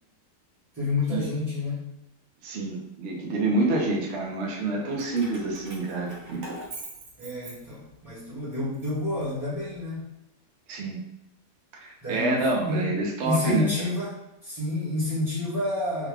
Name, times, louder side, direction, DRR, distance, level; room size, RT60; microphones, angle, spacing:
voice 1, 0.7-1.9 7.2-10.0 12.0-12.9 13.2-14.2 14.4-16.1, left 2 dB, 15° right, -10 dB, 0.9 m, -29 dB
voice 2, 2.4-6.4 10.7-11.0 11.8-13.9, right 2 dB, 55° right, -1 dB, 0.8 m, -27 dB
Keys jangling, 4.9-8.1 8.5-9.8, right 2 dB, 75° right, 1.4 m, -43 dB
3.6 x 2.2 x 3.4 m, 0.88 s
omnidirectional pair, 1.9 m